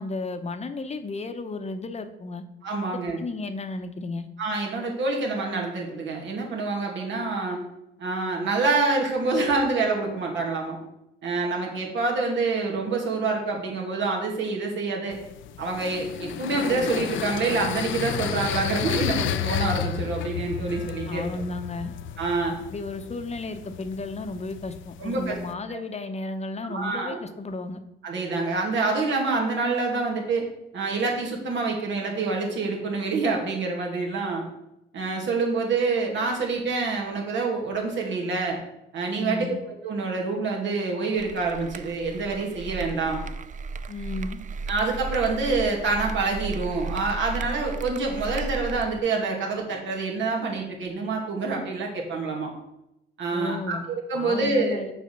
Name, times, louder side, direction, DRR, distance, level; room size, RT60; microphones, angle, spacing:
voice 1, 0.0-2.4 2.8-4.2 21.1-21.9 22.7-27.8 39.2-39.6 43.9-44.4 53.3-53.8 54.1-54.9, left 3 dB, 35° left, 9 dB, 0.8 m, -33 dB
voice 2, 2.6-3.2 4.4-7.6 8.0-10.8 11.2-15.2 15.6-21.3 22.2-22.6 25.0-25.4 26.7-27.2 28.0-30.5 30.7-34.4 34.9-38.6 38.9-39.6 39.8-43.2 44.7-52.5 53.2-54.8, right 3 dB, 70° right, 0 dB, 2.3 m, -26 dB
sound 1, 15.1-25.5, left 10 dB, 75° left, 0.5 m, -32 dB
sound 2, 41.2-49.0, right 4 dB, 40° right, 0.5 m, -35 dB
6.7 x 5.0 x 6.5 m, 0.87 s
cardioid pair, 90°, 20 cm